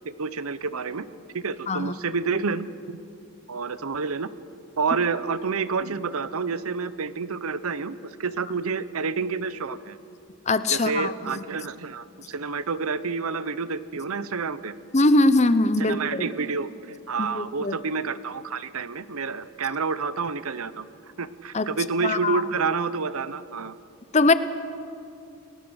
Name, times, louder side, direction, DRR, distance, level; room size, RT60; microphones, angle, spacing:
voice 1, 0.0-1.1 1.3-3.0 3.5-4.3 4.8-10.0 10.7-14.7 15.8-20.9 21.2-23.7, right 5 dB, 75° right, 15 dB, 0.8 m, -29 dB
voice 2, 10.5-11.3 14.9-16.3 17.2-17.7 21.5-21.7 22.0-22.4 24.1-24.3, left 2 dB, 30° left, 13 dB, 0.7 m, -21 dB
29.5 x 19.0 x 6.4 m, 2.6 s
head